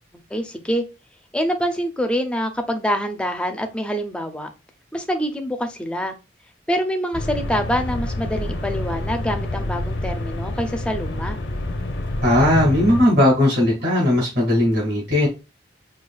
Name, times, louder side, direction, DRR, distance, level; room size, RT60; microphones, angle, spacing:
voice 1, 0.3-0.8 1.3-4.5 4.9-6.2 6.7-11.4, equal, 5° left, 0.4 m, -25 dB
sound 1, 7.1-13.0, left 1 dB, 75° left, 0.6 m, -27 dB
voice 2, 12.2-15.3, left 1 dB, 60° right, 1.9 m, -17 dB
4.7 x 2.3 x 2.3 m
head